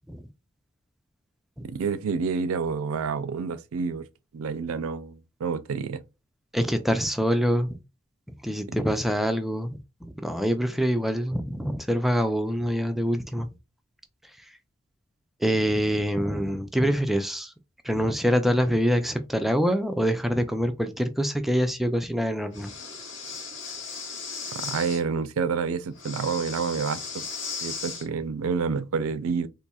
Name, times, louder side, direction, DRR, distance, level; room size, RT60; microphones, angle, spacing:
voice 1, 1.6-4.1 4.3-6.0 8.7-8.8 24.6-27.3 27.6-29.5, right 5 dB, 90° right, 0.4 m, -28 dB
voice 2, 6.5-7.8 8.4-13.5 15.4-17.5 17.8-22.7, equal, ahead, 0.4 m, -25 dB
Breathing, 22.5-25.0 26.0-28.1, left 5 dB, 60° left, 1.1 m, -36 dB
4.1 x 2.7 x 2.3 m
head